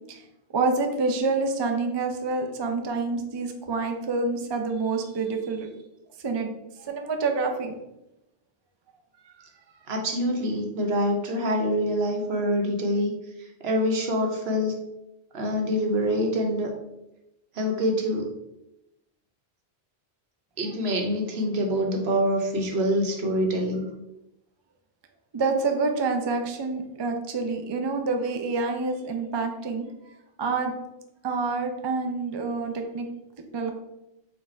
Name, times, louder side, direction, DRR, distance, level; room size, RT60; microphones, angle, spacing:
voice 1, 0.5-5.7 6.2-6.5 6.8-7.8 25.3-29.8 30.4-30.7 31.2-33.1 33.5-33.7, right 3 dB, 45° right, 4 dB, 0.3 m, -27 dB
voice 2, 9.9-13.1 13.6-14.7 15.3-16.7 17.5-18.3 20.6-23.9, equal, 75° right, 2 dB, 1.0 m, -25 dB
4.3 x 2.3 x 4.3 m, 0.89 s
omnidirectional pair, 1.1 m